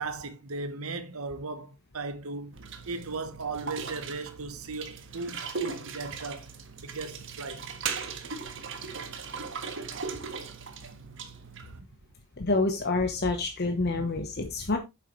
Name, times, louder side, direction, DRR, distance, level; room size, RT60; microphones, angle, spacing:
voice 1, 0.0-2.5 2.9-6.5 6.8-7.7 13.8-14.0, right 3 dB, 75° right, 1.1 m, -37 dB
sound 1, 2.5-11.8, right 5 dB, 60° right, 1.5 m, -38 dB
voice 2, 12.4-14.8, left 3 dB, 45° left, 1.0 m, -27 dB
9.3 x 7.4 x 3.2 m
head